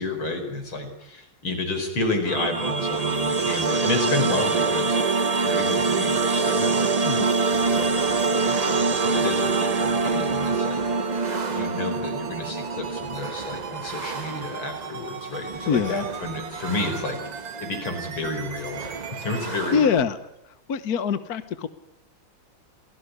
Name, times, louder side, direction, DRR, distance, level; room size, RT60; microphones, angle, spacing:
voice 1, 0.0-10.8 11.5-17.2 17.6-20.0, left 2 dB, 85° left, 6 dB, 5.7 m, -31 dB
sound 1, 2.2-13.3, right 4 dB, 45° right, 0.5 m, -24 dB
sound 2, 2.9-19.5, right 7 dB, 65° right, 2.0 m, -39 dB
sound 3, 7.5-20.0, right 3 dB, 25° right, 1.0 m, -38 dB
voice 2, 15.7-16.0 19.5-20.2 20.7-21.7, left 6 dB, 55° left, 11 dB, 1.5 m, -24 dB
27.0 x 18.0 x 9.8 m, 0.83 s
omnidirectional pair, 2.2 m